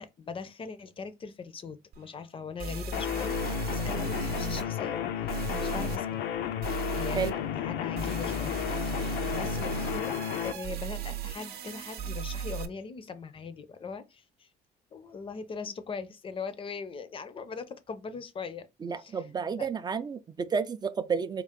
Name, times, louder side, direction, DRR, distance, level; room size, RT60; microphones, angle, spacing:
voice 1, 0.0-6.2 6.6-6.7 6.9-14.5 14.9-18.7 19.0-19.2 19.6-19.7, left 5 dB, 30° left, 0.5 m, -40 dB
sound 1, 1.9-2.0 2.6-4.6 5.3-6.0 6.6-7.3 8.0-12.7, right 7 dB, 65° right, 0.6 m, -36 dB
sound 2, 2.9-10.5, left 10 dB, 80° left, 0.5 m, -32 dB
voice 2, 18.8-21.4, right 6 dB, 25° right, 0.4 m, -31 dB
3.6 x 2.4 x 3.6 m
cardioid pair, 110°, 17 cm